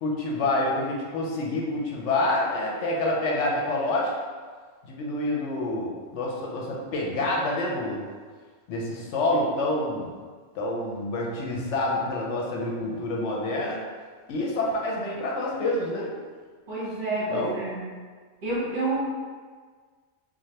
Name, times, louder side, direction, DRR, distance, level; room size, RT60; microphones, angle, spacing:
voice 1, 0.0-4.1 4.8-8.0 8.7-10.1 10.5-13.8 14.3-16.1 17.3-17.5, left 2 dB, 75° left, -2 dB, 0.9 m, -27 dB
voice 2, 16.7-17.8 18.4-19.0, right 2 dB, 45° right, -8 dB, 0.9 m, -29 dB
3.1 x 2.2 x 2.7 m, 1.5 s
omnidirectional pair, 1.2 m